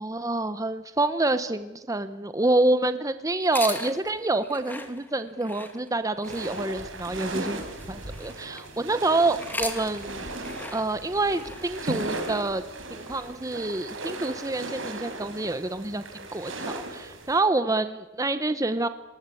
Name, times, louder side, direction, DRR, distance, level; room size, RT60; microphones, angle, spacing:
voice 1, 0.0-10.3 10.7-12.6 12.9-18.9, right 2 dB, 15° right, 11 dB, 0.8 m, -27 dB
sound 1, 3.4-8.8 9.3-13.3, left 2 dB, 10° left, 2.4 m, -40 dB
sound 2, 6.2-17.4, right 2 dB, 85° right, 4.5 m, -37 dB
30.0 x 20.0 x 8.4 m, 1.1 s
head